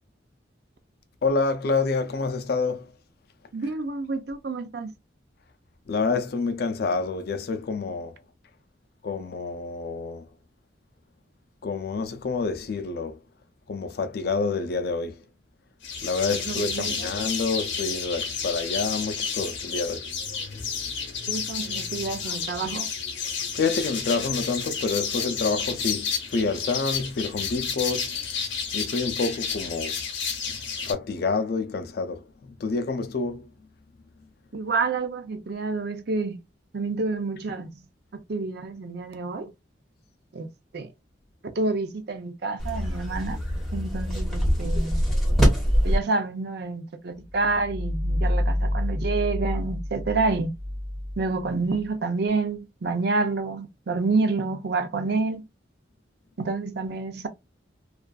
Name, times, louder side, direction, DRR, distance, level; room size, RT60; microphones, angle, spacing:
voice 1, 1.2-2.9 5.9-8.2 9.0-10.3 11.6-13.2 13.7-15.2 16.0-20.1 23.5-28.2 28.7-30.0 30.5-30.6 30.8-33.5, left 4 dB, 55° left, 0.4 m, -28 dB
voice 2, 3.5-4.9 16.3-17.1 21.3-22.9 34.5-36.4 36.7-37.7 38.3-39.5 40.3-40.5 40.7-40.9 41.6-43.4 43.7-45.0 45.8-50.5 51.2-55.4 56.4-57.3, right 3 dB, 60° right, 0.5 m, -28 dB
sound 1, 15.8-30.9, left 6 dB, 85° left, 0.7 m, -31 dB
sound 2, 42.6-46.0, equal, ahead, 0.9 m, -23 dB
sound 3, 47.2-51.9, left 1 dB, 85° right, 0.9 m, -28 dB
2.4 x 2.4 x 2.2 m
head